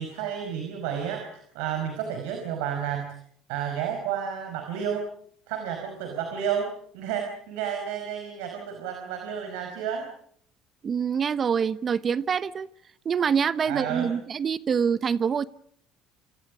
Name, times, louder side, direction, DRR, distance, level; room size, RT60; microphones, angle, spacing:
voice 1, 0.0-3.2 3.5-5.1 5.5-10.1 13.6-14.1, right 8 dB, 75° right, 4 dB, 5.0 m, -31 dB
voice 2, 10.8-12.7 13.0-15.5, right 7 dB, 40° right, 16 dB, 1.0 m, -25 dB
27.5 x 27.5 x 5.1 m, 0.62 s
hypercardioid pair, 70°, 0 cm